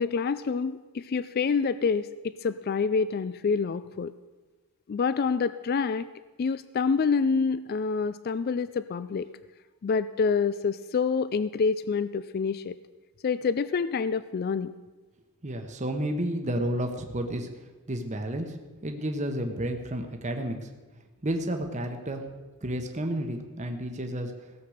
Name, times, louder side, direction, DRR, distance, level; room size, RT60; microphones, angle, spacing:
voice 1, 0.0-4.1 4.9-6.1 6.4-9.3 9.8-12.8 13.2-14.7, left 5 dB, 45° left, 15 dB, 0.3 m, -27 dB
voice 2, 15.4-17.5 17.9-18.6 18.8-20.7 21.2-22.2 22.6-24.3, right 1 dB, 30° right, 4 dB, 1.1 m, -31 dB
16.5 x 7.6 x 6.5 m, 1.2 s
head